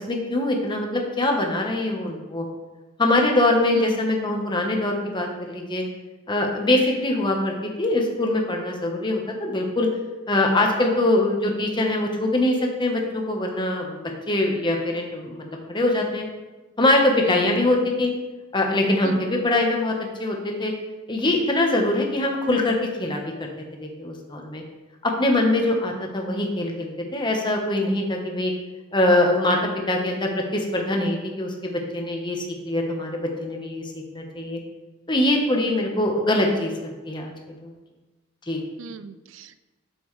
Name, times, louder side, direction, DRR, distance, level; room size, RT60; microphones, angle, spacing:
voice 1, 0.0-2.4 3.0-5.8 6.3-9.9 10.3-16.2 16.8-18.1 18.5-20.7 21.1-23.5 23.8-24.6 25.0-28.5 28.9-29.6 29.9-34.6 35.1-37.3 37.6-37.7 38.5-38.6, left 1 dB, 25° left, 1 dB, 1.1 m, -23 dB
voice 2, 3.7-4.7 17.2-17.5 19.0-19.4 25.7-26.1 38.8-39.6, right 5 dB, 80° right, 13 dB, 0.5 m, -39 dB
8.6 x 7.1 x 3.3 m, 1.2 s
head